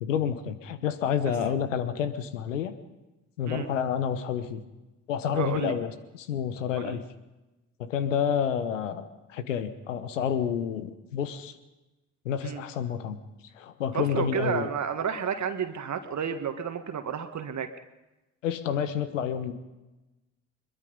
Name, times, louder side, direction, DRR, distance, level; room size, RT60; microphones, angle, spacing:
voice 1, 0.0-2.7 3.4-4.6 5.1-7.0 7.8-11.6 12.2-13.2 13.5-14.7 18.4-19.5, left 8 dB, 90° left, 12 dB, 1.1 m, -29 dB
voice 2, 5.4-5.7 6.8-7.0 12.4-12.6 13.9-17.7, right 7 dB, 50° right, 8 dB, 1.7 m, -31 dB
22.5 x 22.0 x 5.4 m, 1.0 s
hypercardioid pair, 45°, 37 cm